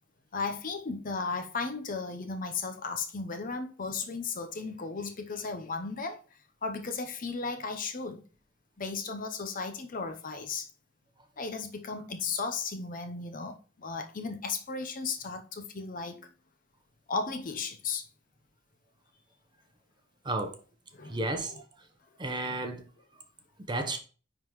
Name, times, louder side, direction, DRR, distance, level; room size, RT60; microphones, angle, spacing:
voice 1, 0.3-6.2 6.6-8.2 8.8-10.7 11.4-16.3 17.1-18.1 20.9-21.3 22.5-22.6, left 4 dB, 40° left, 0.7 m, -35 dB
voice 2, 20.2-20.6 21.1-21.5 22.2-22.9 23.7-24.0, right 2 dB, 20° right, 0.8 m, -32 dB
9.9 x 3.7 x 3.1 m
head